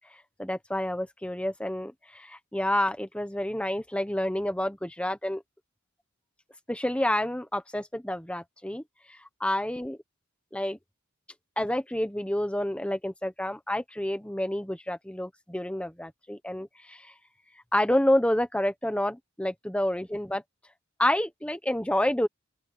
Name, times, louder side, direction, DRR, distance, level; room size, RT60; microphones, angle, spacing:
voice 1, 0.4-5.4 6.7-10.0 10.5-10.8 11.6-17.1 17.7-20.4 21.0-22.3, left 1 dB, 5° left, 1.1 m, -29 dB
open air
head